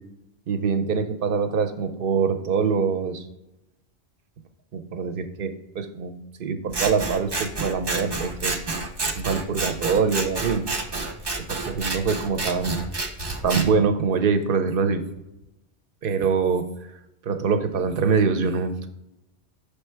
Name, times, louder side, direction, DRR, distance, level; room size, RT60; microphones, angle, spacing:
voice 1, 0.5-3.2 4.7-8.5 9.2-10.6 11.5-12.7 13.4-15.0 16.0-16.6 17.2-18.9, right 5 dB, 60° right, 8 dB, 0.8 m, -24 dB
Scissors, 6.7-13.7, right 3 dB, 30° right, 0.5 m, -29 dB
6.8 x 3.3 x 4.4 m, 0.90 s
omnidirectional pair, 1.1 m